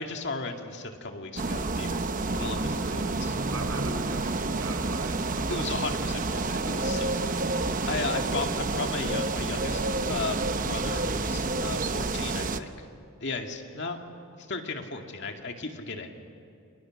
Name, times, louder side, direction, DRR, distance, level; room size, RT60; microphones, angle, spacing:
voice 1, 0.0-3.4 5.5-12.9 13.2-14.0 14.5-16.2, left 3 dB, 55° left, 4 dB, 2.2 m, -35 dB
sound 1, 1.4-12.6, right 3 dB, 40° right, 0.9 m, -29 dB
voice 2, 2.6-5.7, right 2 dB, 80° right, 5 dB, 4.5 m, -40 dB
29.5 x 26.5 x 6.5 m, 2.6 s
head